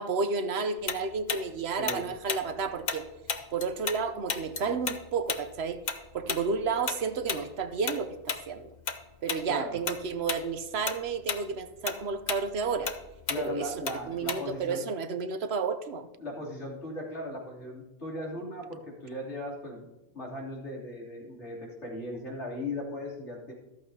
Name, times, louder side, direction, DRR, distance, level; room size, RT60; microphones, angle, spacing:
voice 1, 0.0-3.1 3.5-5.8 6.1-8.7 9.2-12.9 13.4-16.1, right 5 dB, 65° right, 10 dB, 1.0 m, -31 dB
Tick-tock, 0.9-4.0 4.3-9.0 9.3-9.5 9.9-10.4 10.7-14.7, left 5 dB, 45° left, 0.9 m, -34 dB
voice 2, 9.5-9.8 13.3-14.8 16.2-19.9 20.1-23.5, left 1 dB, 85° left, -4 dB, 3.6 m, -37 dB
13.5 x 13.5 x 2.8 m, 1.1 s
omnidirectional pair, 1.2 m